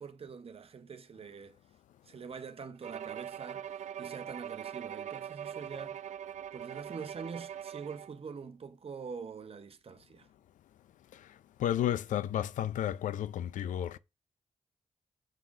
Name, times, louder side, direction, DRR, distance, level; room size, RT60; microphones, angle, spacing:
voice 1, 0.0-1.6 2.1-3.7 4.0-6.0 6.5-10.3, right 5 dB, 50° right, 1.0 m, -44 dB
Bowed string instrument, 2.8-8.2, right 9 dB, 65° right, 0.5 m, -42 dB
voice 2, 11.6-14.0, left 11 dB, 85° left, 0.5 m, -32 dB
7.5 x 3.7 x 6.4 m
cardioid pair, 60°, 13 cm